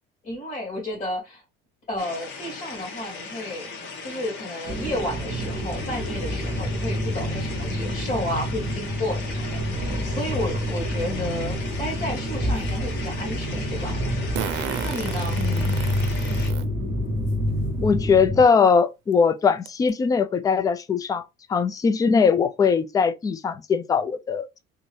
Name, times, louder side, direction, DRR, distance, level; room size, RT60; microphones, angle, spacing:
voice 1, 0.2-1.4 1.9-3.7 4.0-13.9 14.8-15.4, left 1 dB, 40° left, 2.3 m, -32 dB
sound 1, 2.0-16.5, left 4 dB, 65° left, 1.3 m, -38 dB
sound 2, 4.7-18.4, equal, 35° right, 1.1 m, -28 dB
Fart, 11.6-11.7 14.4-16.6 17.3-17.4 18.7-18.8 19.1-19.2 19.7-19.9, right 10 dB, 70° right, 0.6 m, -33 dB
voice 2, 15.4-15.8 17.8-21.2 21.5-24.6, left 5 dB, 20° left, 0.3 m, -21 dB
3.7 x 2.6 x 3.2 m
cardioid pair, 140°, 20 cm